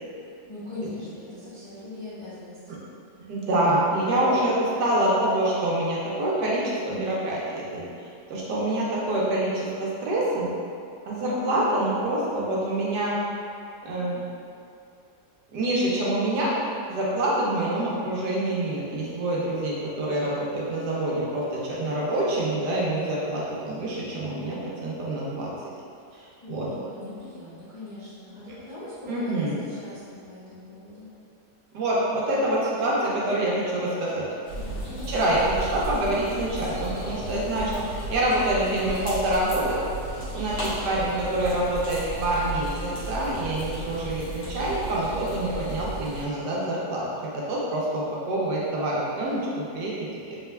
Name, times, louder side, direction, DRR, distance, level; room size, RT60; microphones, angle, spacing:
voice 1, 0.1-2.8 11.1-11.7 26.4-31.1 34.5-35.2 40.2-40.4, left 2 dB, 40° left, -13 dB, 0.4 m, -40 dB
voice 2, 3.3-10.5 11.0-13.2 13.8-14.2 15.5-16.5 16.9-25.5 26.5-26.7 29.1-29.6 31.7-34.2 35.1-39.8 40.1-50.4, right 1 dB, 75° right, -5 dB, 1.3 m, -26 dB
sound 1, 34.5-46.3, right 1 dB, 80° left, 1.8 m, -35 dB
4.2 x 3.2 x 2.2 m, 2.5 s
omnidirectional pair, 1.9 m